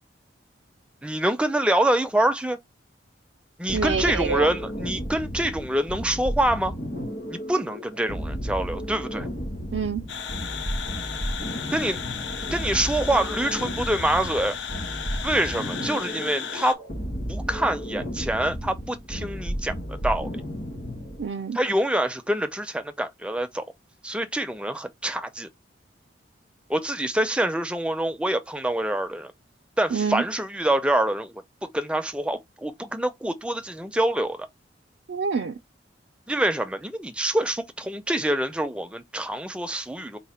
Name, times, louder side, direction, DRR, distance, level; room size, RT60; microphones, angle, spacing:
voice 1, 1.0-2.6 3.6-6.7 7.3-9.3 11.7-12.0 12.5-14.6 15.2-16.8 17.3-20.3 21.5-23.6 24.0-25.5 26.7-29.3 29.8-34.5 36.3-40.2, right 1 dB, 5° right, 0.4 m, -26 dB
sound 1, 3.7-21.3, equal, 60° left, 1.9 m, -33 dB
voice 2, 3.7-4.5 9.7-10.1 21.2-21.6 29.9-30.2 35.1-35.5, right 6 dB, 75° right, 0.4 m, -26 dB
sound 2, 10.1-16.7, left 7 dB, 80° left, 0.6 m, -35 dB
4.1 x 2.2 x 4.2 m
head